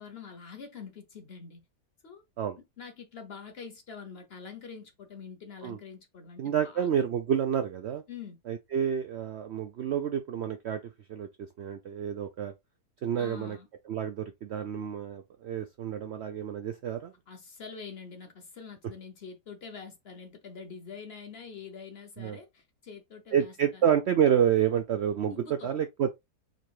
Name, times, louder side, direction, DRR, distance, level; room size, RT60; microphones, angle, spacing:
voice 1, 0.0-1.6 2.0-2.2 2.6-6.9 8.1-8.4 13.2-13.7 17.3-23.8 25.3-25.7, left 5 dB, 50° left, 0.8 m, -45 dB
voice 2, 6.4-8.0 8.5-10.8 11.1-12.5 13.0-13.6 13.9-17.1 22.2-22.4 23.3-25.3 25.6-26.1, right 9 dB, 90° right, 0.5 m, -29 dB
3.9 x 2.8 x 4.6 m
omnidirectional pair, 1.7 m